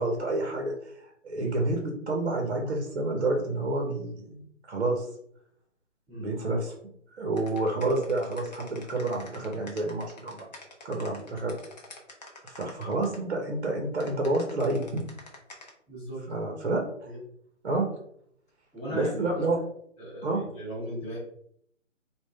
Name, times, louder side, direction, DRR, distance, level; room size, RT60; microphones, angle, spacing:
voice 1, 0.0-4.4 4.7-5.1 6.1-6.7 7.1-10.5 10.8-11.5 12.4-15.0 16.3-17.1 17.6-17.9 18.9-19.6 20.2-20.4, right 2 dB, 55° right, 1 dB, 1.0 m, -29 dB
voice 2, 6.1-6.4 15.9-16.2 17.1-17.2 18.7-19.3 20.0-21.2, equal, ahead, -17 dB, 1.1 m, -37 dB
sound 1, 7.4-13.2 14.0-15.7, left 2 dB, 35° left, 0.7 m, -47 dB
3.6 x 2.4 x 3.3 m, 0.68 s
hypercardioid pair, 160°, 38 cm